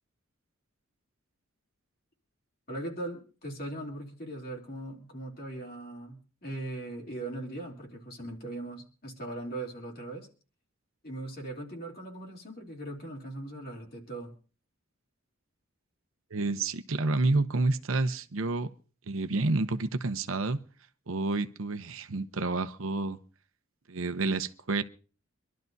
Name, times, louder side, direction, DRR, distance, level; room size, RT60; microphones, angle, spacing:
voice 1, 2.7-10.3 11.0-14.3, right 1 dB, 45° left, 3.1 m, -39 dB
voice 2, 16.3-18.7 19.1-20.6 21.1-23.2 23.9-24.8, right 3 dB, 80° right, 0.8 m, -29 dB
25.5 x 12.0 x 2.7 m
head